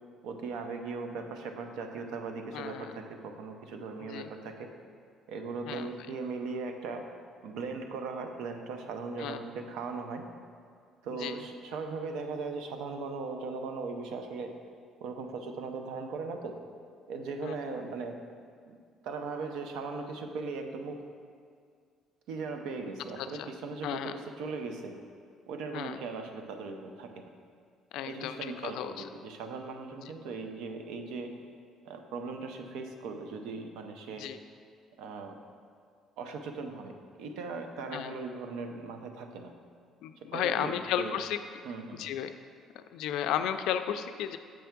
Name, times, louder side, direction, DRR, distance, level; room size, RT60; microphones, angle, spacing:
voice 1, 0.2-4.7 5.3-7.0 7.4-10.3 11.0-14.5 15.0-16.5 17.1-18.2 18.6-18.7 19.0-21.0 22.3-25.0 25.5-27.2 28.0-31.3 31.8-34.3 35.0-35.4 36.2-39.5 40.2-41.2 41.6-42.1, right 4 dB, 85° right, 5 dB, 0.6 m, -38 dB
voice 2, 2.5-2.9 4.0-4.3 5.7-5.9 9.2-9.4 11.2-11.4 17.4-17.5 23.2-23.5 23.8-24.1 25.7-26.0 27.9-28.9 34.2-34.4 37.9-38.1 40.0-41.4 42.0-42.3 42.8-44.4, left 10 dB, 80° left, 9 dB, 0.3 m, -33 dB
7.5 x 3.4 x 5.9 m, 2.1 s
cardioid pair, 160°, 0 cm